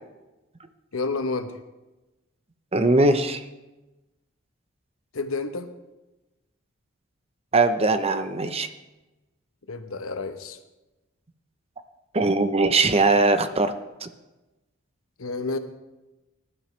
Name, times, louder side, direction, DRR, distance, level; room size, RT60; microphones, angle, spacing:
voice 1, 0.9-1.6 5.1-5.7 9.7-10.6 15.2-15.6, left 3 dB, 90° left, 8 dB, 1.1 m, -29 dB
voice 2, 2.7-3.4 7.5-8.7 12.1-13.7 14.0-14.1, right 3 dB, 30° right, 9 dB, 0.8 m, -20 dB
19.5 x 12.0 x 3.3 m, 1.1 s
head